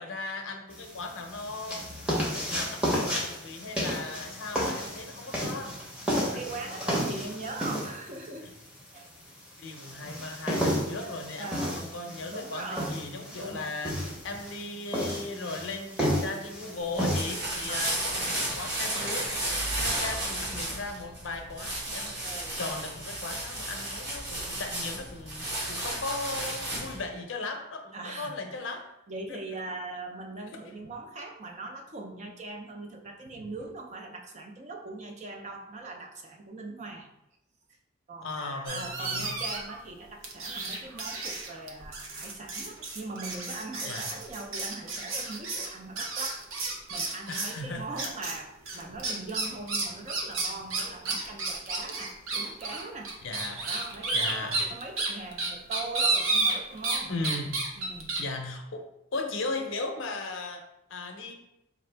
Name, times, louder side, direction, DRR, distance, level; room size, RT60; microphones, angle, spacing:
voice 1, 0.0-1.8 2.2-5.8 6.3-6.4 9.6-28.9 29.3-29.4 30.5-30.6 38.2-39.3 43.8-44.1 47.3-48.1 53.2-53.7 54.1-54.6 57.1-57.6 58.2-61.3, left 3 dB, 65° left, 4 dB, 0.6 m, -37 dB
sound 1, 0.7-19.3, equal, 5° right, 0.7 m, -33 dB
voice 2, 6.3-8.5 8.9-9.1 11.4-11.9 12.3-13.0 13.4-13.6 17.7-18.0 22.2-22.6 27.9-28.6 29.1-37.1 38.1-53.1 53.7-57.1 57.8-58.2, right 3 dB, 35° right, 2 dB, 0.4 m, -41 dB
sound 2, 16.8-27.0, right 1 dB, 55° right, 1.3 m, -33 dB
sound 3, 38.7-39.8 40.2-47.6 48.0-48.4 48.7-57.0 57.2-58.2, right 3 dB, 75° right, 0.7 m, -31 dB
4.5 x 2.5 x 3.3 m, 0.85 s
head